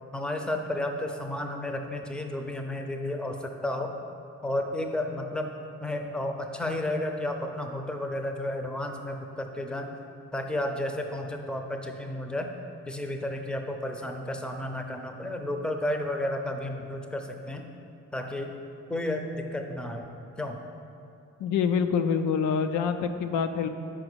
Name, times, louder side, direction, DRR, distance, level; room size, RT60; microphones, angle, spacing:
voice 1, 0.1-3.9 4.4-5.5 5.8-9.9 10.3-12.5 12.9-17.6 18.1-18.5 18.9-20.1 20.4-20.6, left 1 dB, 5° left, 4 dB, 0.5 m, -32 dB
voice 2, 21.4-23.7, left 6 dB, 85° left, 8 dB, 0.5 m, -26 dB
4.9 x 4.9 x 6.1 m, 2.7 s
cardioid pair, 90°, 30 cm